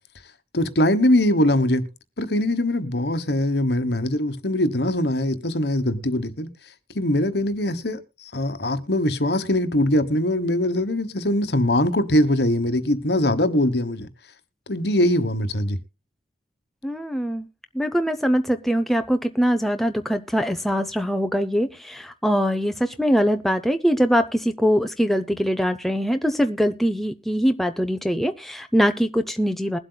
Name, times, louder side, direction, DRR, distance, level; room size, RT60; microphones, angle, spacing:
voice 1, 0.5-1.9 2.2-6.5 6.9-8.0 8.3-14.1 14.7-15.8, left 1 dB, 65° left, 1.2 m, -22 dB
voice 2, 16.8-17.5 17.7-29.8, equal, ahead, 0.6 m, -22 dB
21.5 x 7.9 x 2.2 m
head